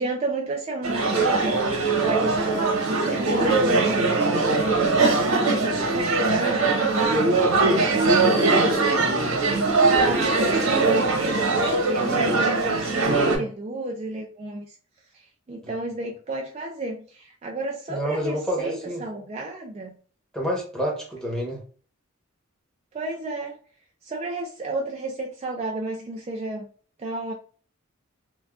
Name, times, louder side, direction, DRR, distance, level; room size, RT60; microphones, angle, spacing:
voice 1, 0.0-14.7 15.5-19.9 22.9-23.5 24.0-26.7 27.0-27.3, right 2 dB, 30° right, -1 dB, 0.3 m, -31 dB
sound 1, 0.8-13.4, right 3 dB, 85° right, 1.1 m, -21 dB
voice 2, 13.0-13.4 15.6-15.7 17.9-19.0 20.3-21.6, equal, 5° left, -2 dB, 0.9 m, -28 dB
3.5 x 2.2 x 2.3 m, 0.42 s
head